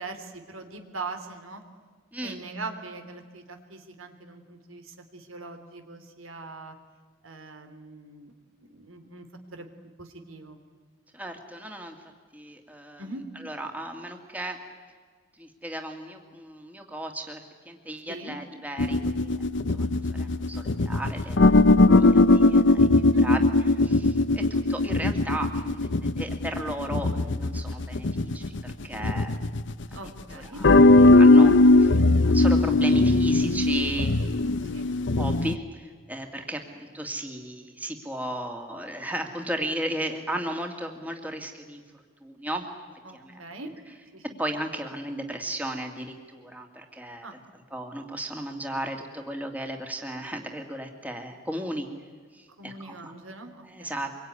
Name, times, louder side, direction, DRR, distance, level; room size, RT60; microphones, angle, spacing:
voice 1, 0.0-1.6 2.2-6.7 7.2-8.3 8.7-9.2 9.5-9.7 10.0-10.6 13.0-13.2 18.1-18.4 23.1-23.4 29.9-30.6 34.6-34.9 43.0-43.7 44.1-44.4 47.2-47.4 52.6-54.0, right 2 dB, 80° right, 7 dB, 3.2 m, -41 dB
voice 2, 11.1-11.9 12.3-13.0 13.4-14.6 15.4-19.4 19.7-21.6 22.0-23.4 23.9-29.3 30.5-30.7 31.1-34.2 35.2-41.8 42.2-42.7 43.1-43.4 44.4-47.3 47.7-51.9 52.3-53.1 53.7-54.2, right 1 dB, 10° right, 3 dB, 2.3 m, -35 dB
sound 1, 18.8-30.0 30.6-35.6, left 2 dB, 60° left, 0.7 m, -20 dB
25.5 x 23.0 x 9.8 m, 1.5 s
head